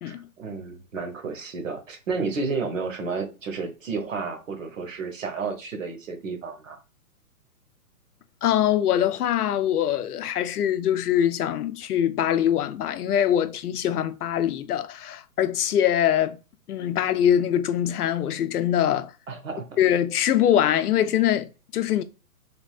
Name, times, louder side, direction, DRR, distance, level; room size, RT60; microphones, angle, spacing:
voice 1, 0.0-6.8 19.3-19.8, right 4 dB, 60° right, 0.9 m, -31 dB
voice 2, 8.4-16.4 16.7-19.1 19.8-22.0, left 10 dB, 80° left, 0.6 m, -23 dB
3.5 x 2.3 x 2.2 m
hypercardioid pair, 180°, 44 cm